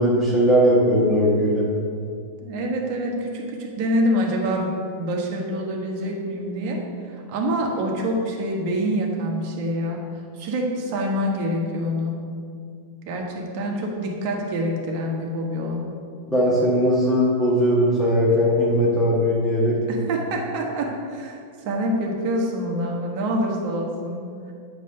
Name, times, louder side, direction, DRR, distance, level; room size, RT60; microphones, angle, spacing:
voice 1, 0.0-1.7 16.3-19.8, equal, 5° left, -6 dB, 1.4 m, -19 dB
voice 2, 2.4-6.8 7.1-10.0 10.3-12.2 13.0-15.8 19.9-21.4 21.6-24.5, equal, 50° right, 0 dB, 1.4 m, -26 dB
8.7 x 3.3 x 5.6 m, 2.3 s
hypercardioid pair, 125°, 0 cm